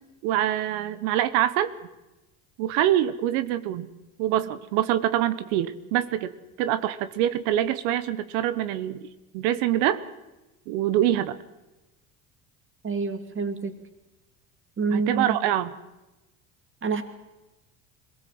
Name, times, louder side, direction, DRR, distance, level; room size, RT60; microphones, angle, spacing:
voice 1, 0.2-1.7 2.6-3.9 4.2-6.3 6.6-9.0 9.3-10.0 10.7-11.3 14.9-15.7, right 12 dB, 75° right, 13 dB, 1.1 m, -25 dB
voice 2, 12.8-13.8 14.8-15.4 16.8-17.0, right 4 dB, 30° right, 7 dB, 2.8 m, -27 dB
22.5 x 17.5 x 7.7 m, 1.0 s
hypercardioid pair, 80°, 42 cm